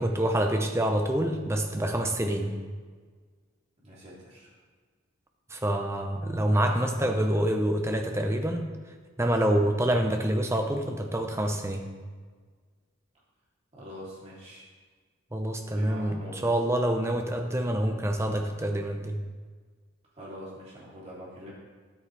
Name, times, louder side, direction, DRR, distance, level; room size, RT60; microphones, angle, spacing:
voice 1, 0.0-2.6 5.5-8.7 9.2-11.9 15.3-19.2, right 1 dB, 10° right, 4 dB, 0.6 m, -27 dB
voice 2, 3.8-4.5 13.7-14.7 15.7-16.4 20.1-21.5, equal, 30° right, -8 dB, 3.0 m, -44 dB
9.9 x 8.5 x 3.3 m, 1.5 s
head